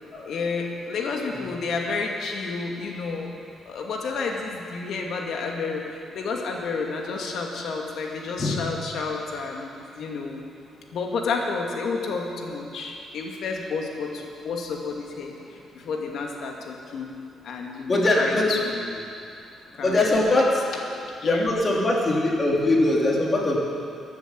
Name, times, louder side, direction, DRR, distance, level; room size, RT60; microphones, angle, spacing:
voice 1, 0.2-3.3 3.7-10.4 10.9-19.0 19.8-20.0 20.7-20.8 21.2-21.5, left 4 dB, 70° left, 1 dB, 2.2 m, -30 dB
voice 2, 17.9-18.5 19.8-20.5 21.2-23.7, left 2 dB, 35° left, -2 dB, 3.3 m, -21 dB
15.0 x 10.5 x 7.6 m, 2.5 s
cardioid pair, 90°, 0 cm